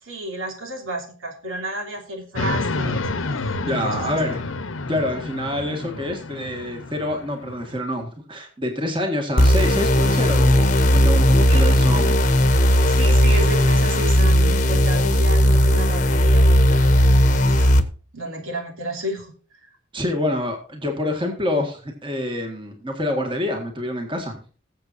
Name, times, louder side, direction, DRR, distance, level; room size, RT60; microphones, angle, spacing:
voice 1, 0.0-4.0 11.5-11.8 12.7-17.8 18.1-19.7, right 1 dB, 80° right, 2 dB, 3.0 m, -32 dB
sound 1, 2.4-7.8, left 3 dB, 75° left, 0.9 m, -29 dB
voice 2, 3.6-4.5 4.9-12.2 19.9-24.4, left 1 dB, 25° right, 3 dB, 1.7 m, -27 dB
sound 2, 9.4-17.8, equal, 35° left, 1.0 m, -16 dB
20.5 x 7.5 x 2.6 m, 0.40 s
head